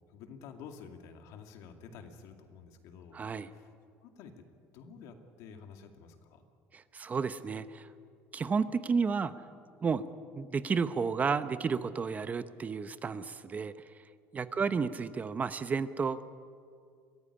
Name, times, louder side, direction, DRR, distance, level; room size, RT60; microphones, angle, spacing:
voice 1, 0.1-3.2 3.5-3.7 4.0-4.3 4.7-6.4 14.5-15.0, left 6 dB, 75° left, 5 dB, 2.4 m, -50 dB
voice 2, 3.1-3.5 6.7-7.9 8.3-9.3 9.8-10.1 10.3-13.9 14.3-16.2, right 5 dB, 30° right, 13 dB, 0.8 m, -32 dB
23.0 x 15.0 x 10.0 m, 2.2 s
cardioid pair, 120°, 6 cm